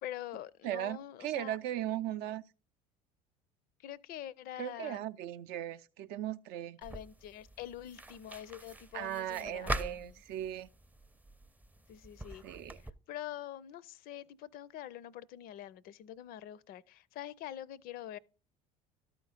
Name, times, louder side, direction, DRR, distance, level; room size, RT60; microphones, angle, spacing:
voice 1, 0.0-1.6 3.8-5.0 6.8-10.2 11.9-18.2, left 12 dB, 50° left, 0.5 m, -45 dB
voice 2, 0.6-2.4 4.6-6.8 8.9-10.7 12.4-12.8, right 12 dB, 60° right, 0.5 m, -38 dB
sound 1, 6.8-12.9, right 1 dB, 10° right, 0.5 m, -43 dB
12.5 x 4.4 x 4.0 m
hypercardioid pair, 65°, 19 cm